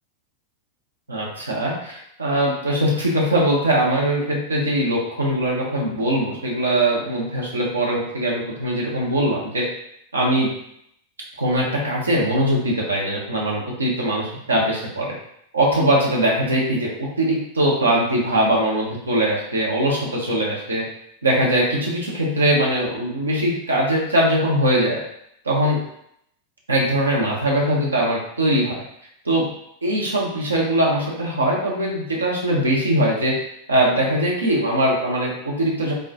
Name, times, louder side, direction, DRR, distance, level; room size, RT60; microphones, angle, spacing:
voice 1, 1.1-9.7 10.1-10.6 11.4-15.1 15.5-20.8 21.2-25.0 25.4-25.8 26.7-28.8 29.2-29.5 29.8-33.4 33.7-35.9, right 1 dB, 75° right, -3 dB, 0.7 m, -21 dB
3.4 x 2.2 x 2.6 m, 0.73 s
figure-of-eight pair, 90°, 0 cm